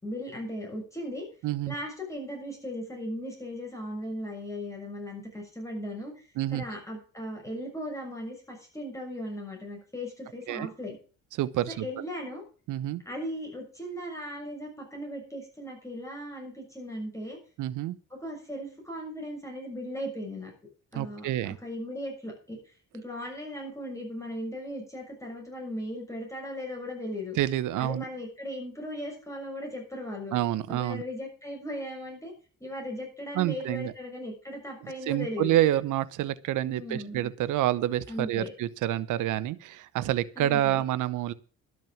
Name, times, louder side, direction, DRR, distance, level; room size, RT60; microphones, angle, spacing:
voice 1, 0.0-1.3 1.7-11.0 11.8-12.4 13.0-17.4 18.1-20.5 20.9-22.6 22.9-27.4 27.8-30.3 30.7-32.3 32.6-35.6 36.6-37.3 38.1-38.5 40.4-40.8, left 1 dB, 10° left, 0 dB, 6.6 m, -37 dB
voice 2, 1.4-1.7 6.4-6.6 10.5-10.7 11.4-11.9 12.7-13.0 17.6-18.0 20.9-21.6 27.4-28.0 30.3-31.0 33.3-33.9 34.8-41.3, right 13 dB, 85° right, 16 dB, 0.9 m, -28 dB
12.0 x 6.3 x 8.6 m, 0.39 s
cardioid pair, 90°, 30 cm